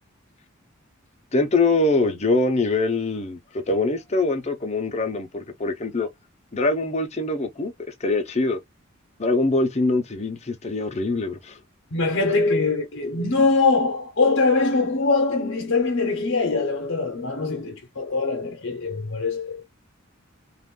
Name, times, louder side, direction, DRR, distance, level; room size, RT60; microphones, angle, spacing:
voice 1, 1.3-6.1 6.5-7.7 8.0-8.6 9.2-11.6, left 2 dB, 30° left, 0.7 m, -23 dB
voice 2, 11.9-19.6, left 3 dB, 65° left, 0.8 m, -22 dB
2.5 x 2.4 x 3.7 m
head